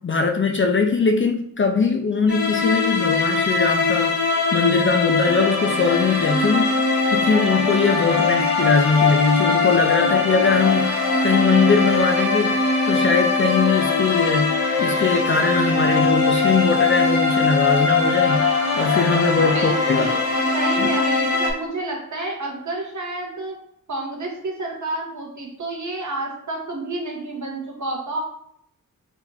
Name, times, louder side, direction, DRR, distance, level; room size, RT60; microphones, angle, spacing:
voice 1, 0.0-6.8 7.1-12.6 12.9-18.5 18.8-20.1 20.8-20.9, left 4 dB, 35° left, 4 dB, 0.4 m, -21 dB
sound 1, 2.3-21.5, left 4 dB, 85° left, 1.3 m, -21 dB
voice 2, 19.5-20.2 20.5-23.5 23.9-28.2, right 2 dB, 55° right, -1 dB, 1.1 m, -29 dB
4.0 x 2.9 x 2.8 m, 0.70 s
wide cardioid pair, 65°, 34 cm